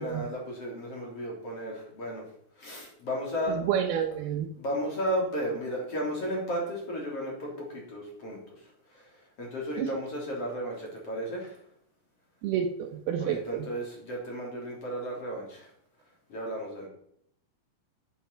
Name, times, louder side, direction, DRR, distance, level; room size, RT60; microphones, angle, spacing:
voice 1, 0.0-2.3 2.6-3.6 4.6-8.6 8.9-9.1 9.4-11.6 13.2-15.7 16.3-16.9, equal, 35° left, -2 dB, 4.0 m, -34 dB
voice 2, 3.7-4.5 9.8-9.9 12.4-13.4, right 9 dB, 75° right, 6 dB, 2.6 m, -29 dB
13.0 x 7.2 x 5.7 m, 0.70 s
omnidirectional pair, 4.9 m